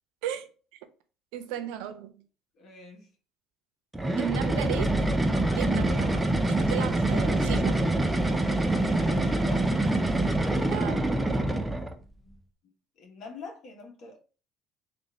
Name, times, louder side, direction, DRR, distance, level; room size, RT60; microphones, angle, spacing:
voice 1, 1.3-2.1 4.2-5.1 5.5-7.9 10.7-11.2, right 11 dB, 85° right, 0.5 m, -35 dB
voice 2, 2.6-3.1 8.8-9.7 12.0-12.4 13.0-14.2, left 3 dB, 60° left, 1.2 m, -45 dB
sound 1, 3.9-12.0, right 1 dB, 10° right, 0.5 m, -25 dB
3.6 x 2.6 x 3.2 m
supercardioid pair, 100°, 0 cm